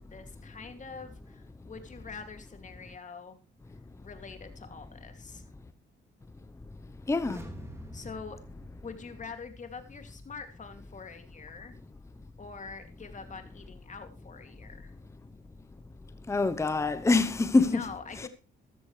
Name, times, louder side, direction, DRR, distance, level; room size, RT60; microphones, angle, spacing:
voice 1, 0.0-3.4 4.0-5.5 7.9-8.4 8.8-11.8 12.4-14.9 17.6-18.3, left 5 dB, 40° left, 2.5 m, -44 dB
sound 1, 6.9-9.8 10.1-10.2, right 1 dB, 15° right, 2.9 m, -47 dB
voice 2, 7.1-7.4 16.3-17.8, left 3 dB, 15° left, 0.8 m, -25 dB
14.0 x 13.0 x 3.2 m
cardioid pair, 90°, 20 cm